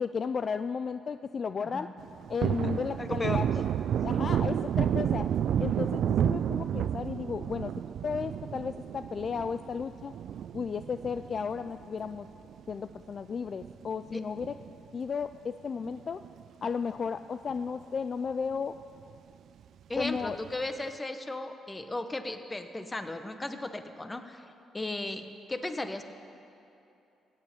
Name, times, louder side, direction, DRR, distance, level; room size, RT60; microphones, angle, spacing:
voice 1, 0.0-1.9 2.3-3.5 4.0-5.3 5.6-7.7 8.0-10.1 10.5-12.3 12.7-14.5 14.9-16.2 16.6-18.7 20.0-20.4, left 6 dB, 45° left, 11 dB, 0.4 m, -34 dB
voice 2, 1.6-1.9 3.0-3.6 14.1-14.2 19.9-24.4 24.7-26.0, left 2 dB, 20° left, 8 dB, 1.1 m, -36 dB
Thunder, 2.0-12.7 13.1-13.2 13.6-15.1 15.3-15.5 15.8-16.7 17.1-17.2 17.5-17.6 20.0-20.5, right 9 dB, 65° right, 0.3 m, -31 dB
16.0 x 8.2 x 9.0 m, 2.8 s
cardioid pair, 90°, 0 cm